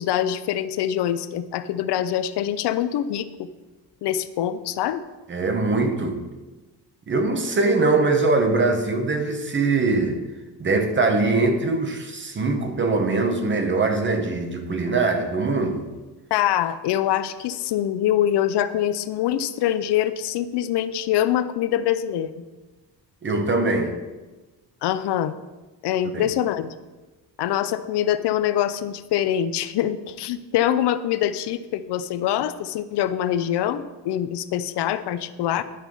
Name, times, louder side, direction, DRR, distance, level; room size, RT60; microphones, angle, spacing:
voice 1, 0.0-3.5 4.0-5.0 16.3-22.3 24.8-25.3 25.8-26.7 27.4-35.6, left 11 dB, 70° left, 13 dB, 0.6 m, -24 dB
voice 2, 5.3-6.2 7.1-10.2 10.6-15.9 23.2-23.9 26.1-26.3, right 3 dB, 25° right, 6 dB, 0.9 m, -22 dB
10.0 x 5.5 x 4.6 m, 1.2 s
cardioid pair, 155°, 43 cm